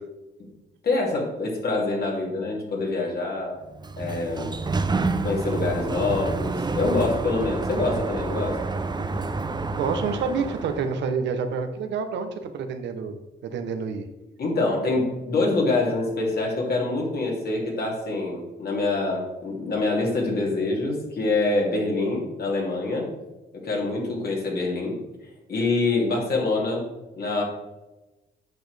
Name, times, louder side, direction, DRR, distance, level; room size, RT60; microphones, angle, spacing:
voice 1, 0.8-3.6 4.0-4.5 5.2-8.6 8.9-9.1 14.4-23.1 23.6-25.0 25.5-26.8 27.2-27.4, left 3 dB, 60° left, -2 dB, 2.6 m, -25 dB
Sliding door, 3.6-11.0, right 3 dB, 25° right, 0.6 m, -29 dB
voice 2, 9.8-13.2 13.4-14.1, right 5 dB, 75° right, 7 dB, 0.9 m, -28 dB
8.6 x 6.1 x 3.4 m, 1.0 s
supercardioid pair, 60°, 19 cm